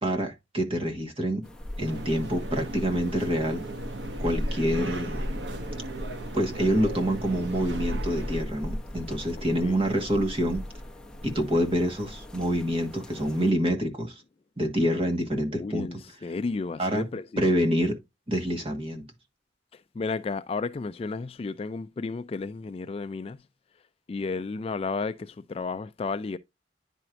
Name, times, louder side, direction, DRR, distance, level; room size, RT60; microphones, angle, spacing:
voice 1, 0.0-1.4 1.8-3.6 4.2-5.2 6.3-10.6 11.2-14.2 14.6-15.9 16.8-17.0 17.4-18.0 18.3-19.0, equal, 30° right, 1.4 m, -26 dB
sound 1, 1.4-13.5, left 1 dB, 5° left, 0.8 m, -38 dB
sound 2, 1.8-8.4, right 1 dB, 80° right, 0.9 m, -36 dB
voice 2, 15.5-17.4 19.7-23.4 24.1-26.4, left 4 dB, 35° left, 0.3 m, -33 dB
9.9 x 4.5 x 2.5 m
head